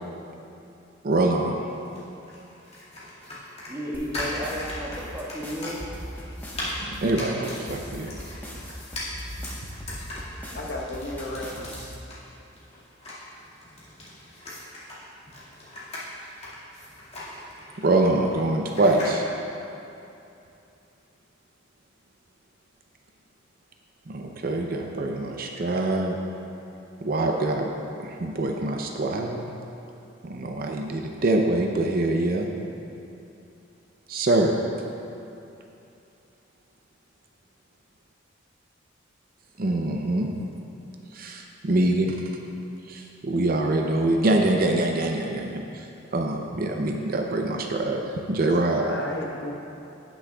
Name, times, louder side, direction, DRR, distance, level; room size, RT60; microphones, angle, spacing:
voice 1, 1.0-1.6 6.8-8.1 17.8-19.2 24.1-26.2 27.0-27.7 28.0-29.4 30.2-32.5 34.1-34.5 39.6-40.3 41.1-42.2 42.9-45.9 46.1-48.9, right 2 dB, 45° right, 2 dB, 0.6 m, -24 dB
sound 1, 1.7-19.2, left 1 dB, 30° left, 2.0 m, -39 dB
voice 2, 3.7-5.8, equal, 15° right, -7 dB, 1.6 m, -33 dB
sound 2, 3.9-11.9, equal, 10° left, 1.1 m, -39 dB
voice 3, 10.4-11.9 48.8-49.5, left 1 dB, 55° left, -1 dB, 1.0 m, -34 dB
17.5 x 6.3 x 2.3 m, 2.8 s
head